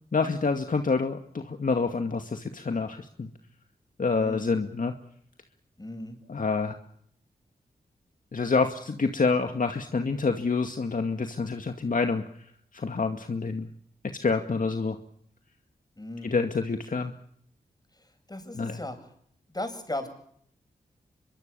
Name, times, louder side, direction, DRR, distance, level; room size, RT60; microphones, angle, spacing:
voice 1, 0.1-3.3 4.0-4.9 6.3-6.8 8.3-12.2 12.7-13.7 14.2-15.0 16.2-17.1 18.6-18.8, left 4 dB, 55° left, 6 dB, 2.2 m, -27 dB
voice 2, 4.1-4.5 5.8-6.2 16.0-16.4 18.3-19.0 19.5-20.1, left 1 dB, 25° left, 7 dB, 7.9 m, -36 dB
24.0 x 23.5 x 7.0 m, 0.67 s
cardioid pair, 40°, 17 cm